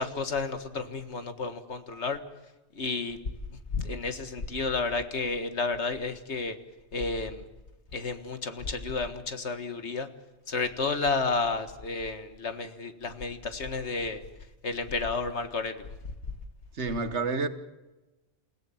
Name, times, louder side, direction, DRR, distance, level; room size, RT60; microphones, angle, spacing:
voice 1, 0.0-2.2 2.7-3.2 3.7-6.6 6.9-7.5 7.9-10.1 10.5-14.2 14.6-15.9, left 4 dB, 75° left, 9 dB, 2.0 m, -31 dB
voice 2, 16.8-17.5, right 3 dB, 75° right, 11 dB, 1.7 m, -29 dB
29.0 x 17.0 x 7.2 m, 1.1 s
omnidirectional pair, 1.2 m